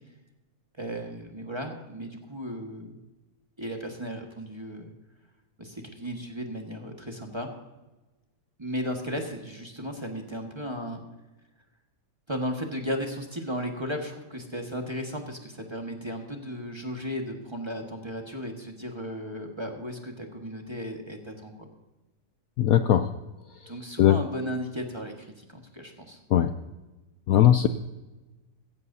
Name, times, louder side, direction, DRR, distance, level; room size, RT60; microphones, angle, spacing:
voice 1, 0.8-3.0 3.6-4.9 5.6-7.5 8.6-11.0 12.3-21.7 23.7-26.2, equal, 15° right, 2 dB, 1.5 m, -35 dB
voice 2, 22.6-23.1 24.0-24.2 26.3-26.5 27.3-27.7, left 11 dB, 70° left, 10 dB, 0.9 m, -19 dB
16.5 x 15.0 x 2.7 m, 1.1 s
omnidirectional pair, 1.9 m